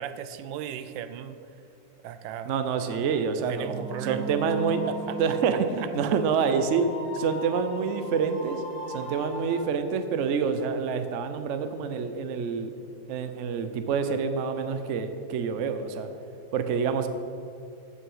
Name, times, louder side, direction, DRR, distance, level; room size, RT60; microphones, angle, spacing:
voice 1, 0.0-1.5 2.0-2.5 3.5-4.3 4.9-6.1, right 9 dB, 80° right, 11 dB, 1.3 m, -37 dB
voice 2, 2.5-3.7 4.1-4.9 5.2-6.9 7.1-8.6 8.9-12.7 13.1-16.1 16.5-17.1, right 6 dB, 65° right, 8 dB, 0.7 m, -27 dB
sound 1, 2.7-9.6, right 2 dB, 50° left, 2.7 m, -39 dB
14.5 x 5.7 x 5.5 m, 2.5 s
omnidirectional pair, 2.1 m